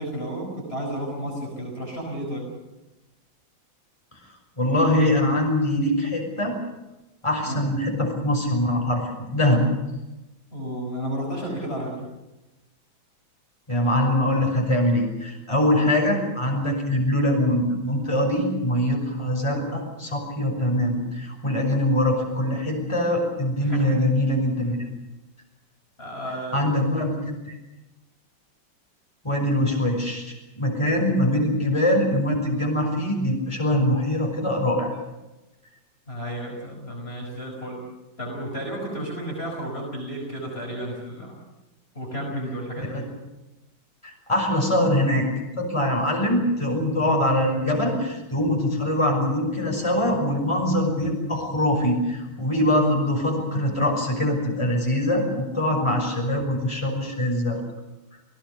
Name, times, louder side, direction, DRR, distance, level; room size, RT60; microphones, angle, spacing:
voice 1, 0.0-2.5 7.5-7.6 10.5-12.1 23.6-24.0 26.0-26.7 36.1-37.8 38.2-41.4 41.9-43.0, equal, 30° left, -1 dB, 5.4 m, -32 dB
voice 2, 4.6-6.6 7.2-9.6 13.7-24.9 26.5-27.5 29.2-35.0 42.8-43.0 44.0-45.3 45.6-57.6, left 1 dB, 15° left, 1 dB, 6.0 m, -23 dB
28.5 x 17.5 x 7.1 m, 1.0 s
omnidirectional pair, 2.2 m